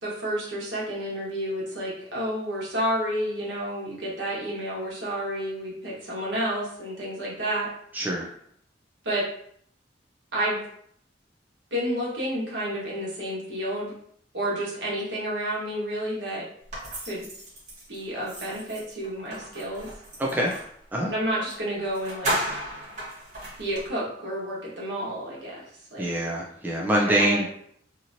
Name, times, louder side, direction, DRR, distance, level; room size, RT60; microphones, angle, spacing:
voice 1, 0.0-7.7 9.0-9.2 10.3-10.6 11.7-13.9 14.3-16.4 17.1-17.3 17.9-19.9 21.1-22.4 23.6-25.6 25.9-26.1 27.0-27.4, right 1 dB, 70° right, -6 dB, 1.3 m, -30 dB
voice 2, 7.9-8.3 20.2-20.5 20.9-21.1 26.0-27.4, right 1 dB, 10° right, -3 dB, 0.4 m, -24 dB
sound 1, 16.7-20.7 21.4-21.6 21.8-23.9, right 1 dB, 40° right, 1.2 m, -34 dB
2.9 x 2.8 x 2.6 m, 0.66 s
head